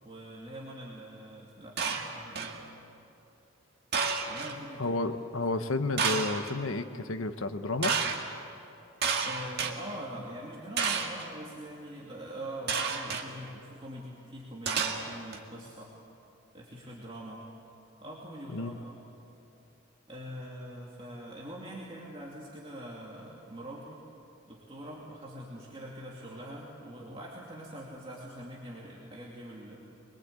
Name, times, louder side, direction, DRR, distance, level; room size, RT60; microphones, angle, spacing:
voice 1, 0.0-2.5 4.3-4.9 5.5-5.6 9.2-15.9 16.5-17.4 18.0-19.0 20.1-24.0 24.5-29.8, equal, 25° right, -4 dB, 2.6 m, -43 dB
sound 1, 1.8-2.6 3.9-4.5 6.0-6.5 7.8-8.2 9.0-9.7 10.8-11.2 12.7-13.2 14.6-15.4, right 5 dB, 50° right, 2.1 m, -30 dB
voice 2, 4.8-7.9 18.5-18.8, left 2 dB, 70° left, 9 dB, 1.1 m, -31 dB
25.0 x 22.5 x 8.3 m, 2.9 s
head